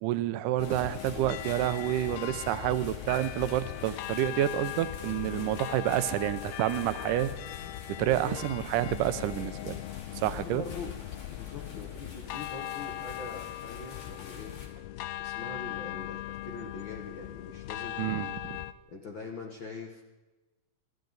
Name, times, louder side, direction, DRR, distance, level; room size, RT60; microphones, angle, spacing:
voice 1, 0.0-7.3 8.0-9.8 10.2-10.6 18.0-18.6, right 13 dB, 75° right, 13 dB, 2.1 m, -29 dB
sound 1, 0.6-18.7, left 14 dB, 85° left, 2.5 m, -39 dB
sound 2, 0.6-14.7, left 3 dB, 50° left, 3.3 m, -51 dB
voice 2, 1.1-1.4 5.3-5.4 8.0-8.4 9.2-9.5 10.2-10.9 11.3-14.5 15.2-18.2 18.9-20.0, left 4 dB, 65° left, 2 dB, 1.2 m, -43 dB
27.5 x 11.5 x 4.0 m, 1.2 s
omnidirectional pair, 4.2 m